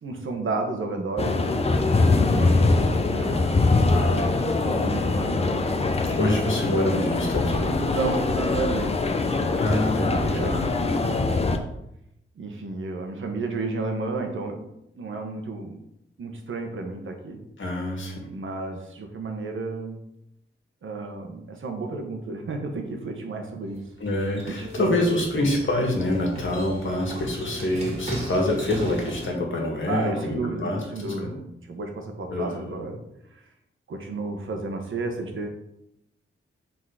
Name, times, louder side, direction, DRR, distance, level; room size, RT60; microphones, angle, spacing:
voice 1, 0.0-1.5 3.1-5.6 7.8-9.0 10.3-10.6 11.0-11.5 12.4-15.8 16.2-17.4 18.3-20.0 20.8-23.8 24.6-25.5 29.9-33.0 33.3-33.4 33.9-35.5, right 3 dB, 70° right, 3 dB, 1.1 m, -32 dB
sound 1, 1.2-11.6, left 3 dB, 30° left, 0.6 m, -23 dB
voice 2, 2.3-3.0 6.1-8.0 9.6-10.7 17.6-18.3 24.0-31.3 32.3-32.8, left 1 dB, 65° left, 0 dB, 1.9 m, -26 dB
sound 2, 23.7-29.3, right 1 dB, 30° right, 2.1 m, -37 dB
6.1 x 3.9 x 4.8 m, 0.81 s
wide cardioid pair, 110°, 21 cm